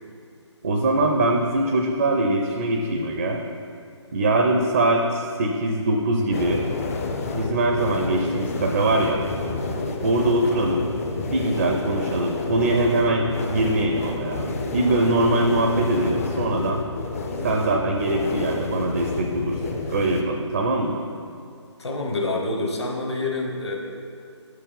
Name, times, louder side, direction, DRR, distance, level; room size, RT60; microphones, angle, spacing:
voice 1, 0.6-3.4 4.1-6.7 7.3-9.2 10.0-10.9 11.3-16.8 17.4-21.0, right 2 dB, 35° right, 2 dB, 0.4 m, -22 dB
sound 1, 6.3-20.2, left 3 dB, 30° left, 0.5 m, -29 dB
voice 2, 21.8-23.7, left 2 dB, 65° left, 0 dB, 1.3 m, -27 dB
6.8 x 4.7 x 5.3 m, 2.5 s
figure-of-eight pair, 150°, 15 cm